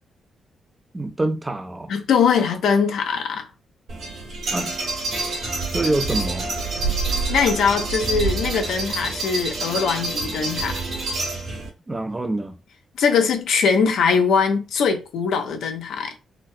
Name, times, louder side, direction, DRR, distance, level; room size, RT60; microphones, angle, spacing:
voice 1, 0.9-1.9 4.5-4.8 5.7-6.5 11.9-12.6, right 2 dB, 20° right, 0.5 m, -26 dB
voice 2, 1.9-3.5 7.3-10.8 13.0-16.1, left 6 dB, 90° left, 0.6 m, -21 dB
sound 1, 3.9-11.7, right 3 dB, 80° right, 2.0 m, -27 dB
4.0 x 2.1 x 2.6 m
cardioid pair, 100°, 0 cm